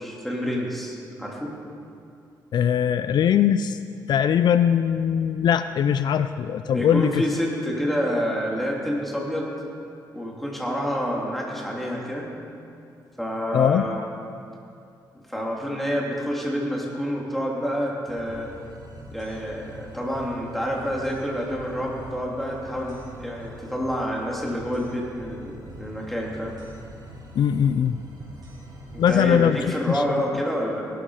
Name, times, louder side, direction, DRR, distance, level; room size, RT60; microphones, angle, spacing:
voice 1, 0.0-1.6 6.7-9.5 10.1-12.3 13.2-14.0 15.3-18.5 19.1-26.6 28.9-30.8, equal, ahead, -3 dB, 3.2 m, -28 dB
voice 2, 2.5-3.8 4.1-7.2 13.5-13.9 27.4-28.0 29.0-29.6 29.9-30.2, left 9 dB, 65° left, 11 dB, 0.5 m, -21 dB
sound 1, 18.1-29.4, right 1 dB, 55° right, 4.7 m, -43 dB
18.5 x 12.5 x 4.9 m, 2.6 s
cardioid pair, 105°, 8 cm